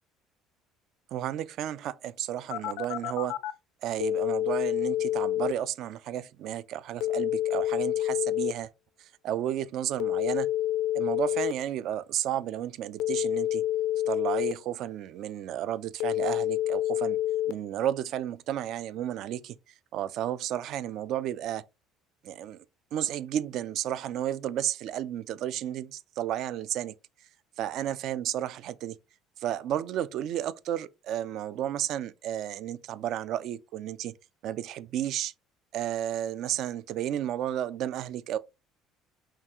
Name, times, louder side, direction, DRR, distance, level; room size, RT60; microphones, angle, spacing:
voice 1, 1.1-3.4 3.8-8.7 9.0-10.5 10.9-13.6 14.1-17.2 17.5-19.6 19.9-21.6 22.2-22.6 22.9-26.9 27.6-29.0 29.4-34.1 34.4-35.3 35.7-38.4, right 11 dB, 55° right, 0.3 m, -32 dB
Telephone, 2.5-3.5 4.0-5.5 7.0-8.5 10.0-11.5 13.0-14.5 16.0-17.5, left 13 dB, 80° left, 0.4 m, -28 dB
5.7 x 2.4 x 2.8 m
cardioid pair, 145°, 0 cm